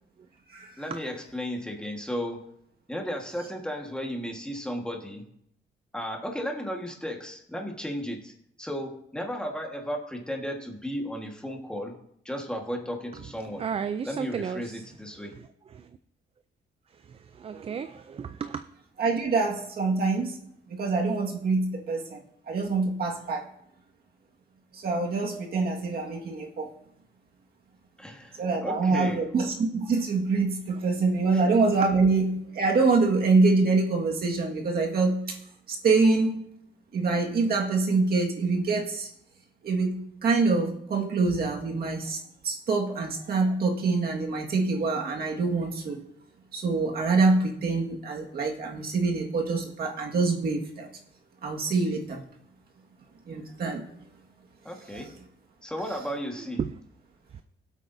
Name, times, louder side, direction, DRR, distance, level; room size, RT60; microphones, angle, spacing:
voice 1, 0.8-2.5 2.9-5.2 5.9-8.3 8.6-12.0 12.2-13.6 14.0-15.3 28.0-29.3 31.3-31.4 54.6-55.1 55.6-56.6, equal, 5° left, 1 dB, 1.5 m, -34 dB
voice 2, 13.6-14.8 15.4-15.9 17.0-18.6 30.7-30.8 56.6-56.7 57.3-57.4, right 7 dB, 30° right, 10 dB, 0.4 m, -34 dB
voice 3, 19.0-20.4 20.7-22.2 22.5-23.4 24.7-26.7 28.4-35.4 35.8-36.4 36.9-39.1 39.6-42.2 42.4-46.0 46.5-50.9 51.4-52.2 53.3-53.8 54.9-55.0, right 3 dB, 55° right, 0 dB, 1.8 m, -25 dB
18.5 x 8.2 x 2.7 m, 0.70 s
cardioid pair, 145°, 19 cm